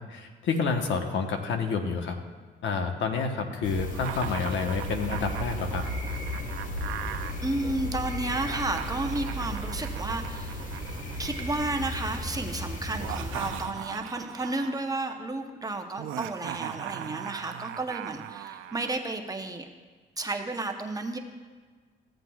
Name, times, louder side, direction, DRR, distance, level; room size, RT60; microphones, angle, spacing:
voice 1, 0.1-2.2 2.6-5.8, left 5 dB, 70° left, 4 dB, 1.1 m, -29 dB
sound 1, 3.6-13.7, equal, 40° left, 1.4 m, -35 dB
Laughter, 3.9-7.3 8.3-11.6 12.8-14.9 16.0-18.9, right 11 dB, 85° right, 0.5 m, -39 dB
voice 2, 7.4-10.6 11.2-19.7 20.2-21.2, right 2 dB, 20° right, 4 dB, 0.8 m, -32 dB
15.5 x 7.8 x 2.3 m, 1.4 s
cardioid pair, 90°, 20 cm